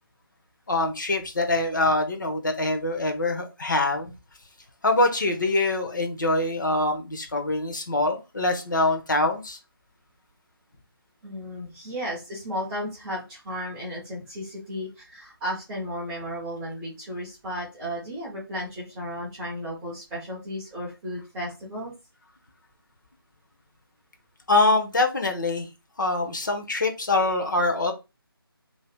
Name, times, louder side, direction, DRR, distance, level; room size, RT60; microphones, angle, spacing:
voice 1, 0.7-4.1 4.8-9.6 24.5-25.7 26.0-27.9, left 2 dB, 50° left, 4 dB, 0.8 m, -24 dB
voice 2, 11.2-21.9, equal, 5° right, -8 dB, 0.5 m, -34 dB
2.8 x 2.7 x 3.2 m, 0.27 s
figure-of-eight pair, 155°, 13 cm